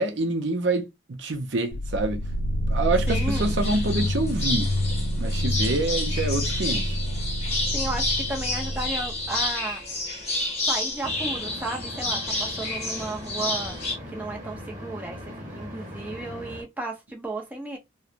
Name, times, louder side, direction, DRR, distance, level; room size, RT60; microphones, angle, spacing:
voice 1, 0.0-2.2 2.7-4.7 5.2-6.9, right 2 dB, 60° right, 0.6 m, -26 dB
sound 1, 1.7-9.5, equal, 70° left, 0.4 m, -28 dB
sound 2, 3.1-14.0, left 2 dB, 30° left, 1.1 m, -30 dB
voice 2, 3.1-3.5 7.7-9.8 10.6-13.8 14.1-17.8, right 2 dB, 10° right, 0.6 m, -34 dB
sound 3, 11.0-16.6, equal, 35° right, 1.2 m, -39 dB
3.1 x 2.1 x 2.5 m
head